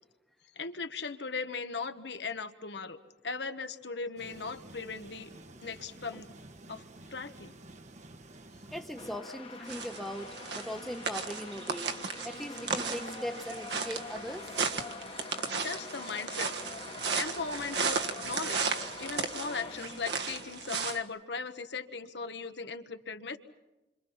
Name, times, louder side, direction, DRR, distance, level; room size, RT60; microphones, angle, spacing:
voice 1, 0.5-3.0 3.2-5.3 5.6-6.3 6.7-6.8 7.1-7.5 15.5-16.5 17.1-23.4, left 4 dB, 80° left, 9 dB, 1.4 m, -38 dB
sound 1, 4.2-9.2, right 2 dB, 45° right, 1.1 m, -51 dB
voice 2, 8.7-11.9 12.2-14.6, equal, ahead, 5 dB, 1.1 m, -40 dB
sound 2, 9.0-21.3, left 3 dB, 35° left, 1.3 m, -45 dB
sound 3, 9.7-21.0, right 5 dB, 80° right, 1.5 m, -35 dB
28.5 x 26.0 x 5.8 m, 1.0 s
head